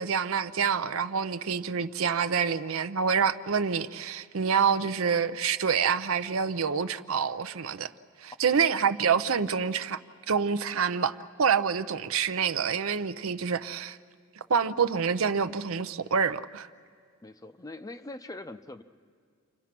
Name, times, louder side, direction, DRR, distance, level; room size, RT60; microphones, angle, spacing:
voice 1, 0.0-7.9 8.2-10.0 10.3-14.0 14.5-16.7, right 6 dB, 70° right, 0.6 m, -27 dB
voice 2, 17.2-18.8, left 2 dB, 15° left, 0.6 m, -42 dB
29.5 x 25.0 x 6.0 m
head